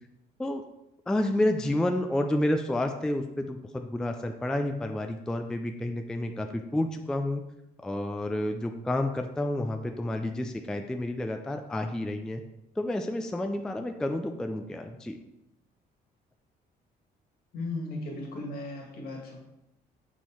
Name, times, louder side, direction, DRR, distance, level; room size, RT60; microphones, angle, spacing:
voice 1, 1.1-7.4 7.8-12.4 12.8-15.2, left 1 dB, 5° left, 5 dB, 0.3 m, -30 dB
voice 2, 17.5-19.4, left 2 dB, 65° left, 1 dB, 1.8 m, -36 dB
7.3 x 4.3 x 4.5 m, 0.87 s
cardioid pair, 165°, 17 cm